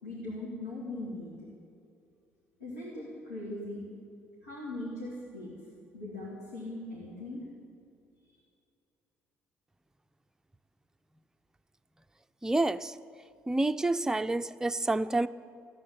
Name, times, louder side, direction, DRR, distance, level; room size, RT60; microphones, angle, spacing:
voice 1, 0.0-1.5 2.6-3.9 4.4-5.5 5.9-7.4, left 2 dB, 90° left, 2.9 m, -40 dB
voice 2, 12.4-13.0 13.5-15.3, right 2 dB, 10° right, 0.5 m, -28 dB
14.0 x 9.2 x 9.9 m
figure-of-eight pair, 50°, 7 cm